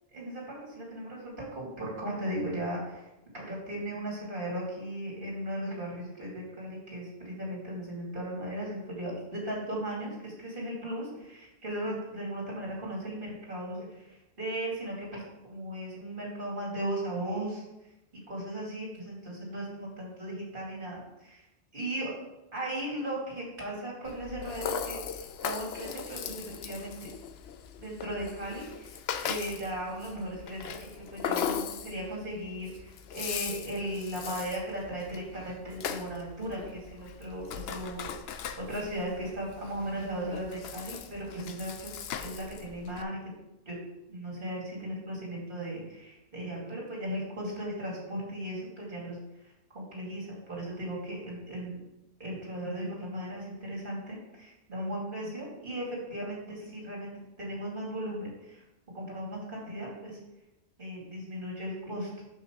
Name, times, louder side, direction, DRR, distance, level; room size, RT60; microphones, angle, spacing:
voice 1, 0.1-17.9 18.3-21.5 21.7-22.1 22.5-27.1 27.8-43.3 43.6-43.8 44.1-51.8 52.2-57.1 57.4-58.6 58.9-60.2 60.8-62.3, right 1 dB, 45° right, -4 dB, 3.0 m, -37 dB
Rattle (instrument), 24.1-43.0, left 8 dB, 65° left, 0.7 m, -39 dB
5.9 x 5.6 x 6.3 m, 0.92 s
omnidirectional pair, 1.2 m